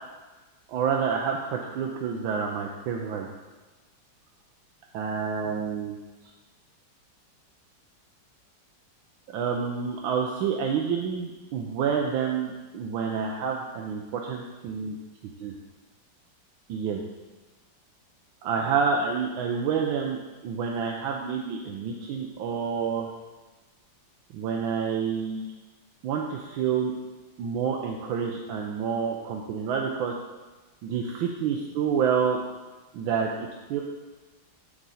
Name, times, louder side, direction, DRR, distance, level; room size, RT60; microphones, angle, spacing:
voice 1, 0.7-3.3 4.9-6.0 9.3-15.0 15.4-15.5 16.7-17.0 18.4-20.2 20.4-23.1 24.3-25.5 26.0-26.9 27.4-30.1 30.8-32.4 32.9-33.8, right 6 dB, 90° right, 0 dB, 1.4 m, -28 dB
9.8 x 3.7 x 4.1 m, 1.2 s
omnidirectional pair, 2.1 m